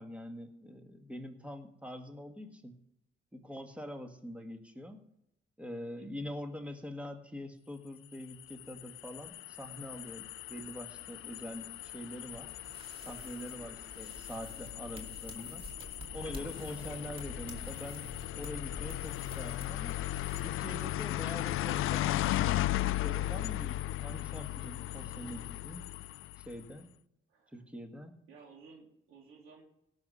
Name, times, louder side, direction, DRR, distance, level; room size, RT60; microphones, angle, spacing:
voice 1, 0.0-2.7 3.3-5.0 5.6-12.5 13.0-15.6 16.1-20.0 20.4-22.7 23.0-25.9 26.4-26.9 27.5-28.2, equal, 5° right, 5 dB, 1.7 m, -44 dB
voice 2, 6.0-6.4 13.4-13.7 27.3-27.6 28.3-29.6, right 5 dB, 90° right, -1 dB, 3.3 m, -56 dB
sound 1, 8.1-26.6, left 15 dB, 85° left, 0.4 m, -37 dB
sound 2, 12.3-20.4, right 1 dB, 25° right, 2.3 m, -50 dB
18.0 x 6.4 x 5.6 m, 0.80 s
cardioid pair, 110°, 21 cm